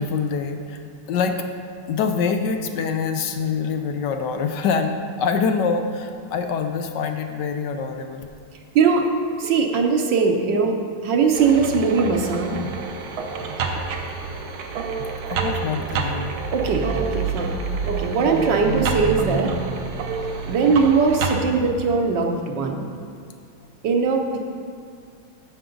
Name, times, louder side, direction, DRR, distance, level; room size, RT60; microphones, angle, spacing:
voice 1, 0.0-1.4 1.8-8.3 13.5-13.6 14.8-14.9 15.3-16.3, left 5 dB, 70° left, 6 dB, 1.1 m, -25 dB
voice 2, 8.7-9.1 9.4-12.6 16.5-19.5 20.4-22.9 23.8-24.4, right 5 dB, 65° right, 2 dB, 1.4 m, -20 dB
sound 1, 11.3-21.4, right 4 dB, 85° right, 1.7 m, -28 dB
14.5 x 6.0 x 3.8 m, 2.3 s
omnidirectional pair, 2.2 m